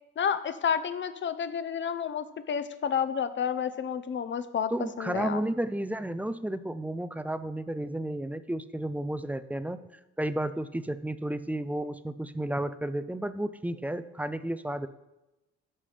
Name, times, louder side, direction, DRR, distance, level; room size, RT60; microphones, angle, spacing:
voice 1, 0.2-4.7 5.0-5.4, left 7 dB, 40° left, 12 dB, 0.6 m, -30 dB
voice 2, 4.7-9.8 10.2-14.9, right 1 dB, 5° right, 12 dB, 0.3 m, -32 dB
12.5 x 5.6 x 3.3 m, 0.98 s
cardioid pair, 90°, 30 cm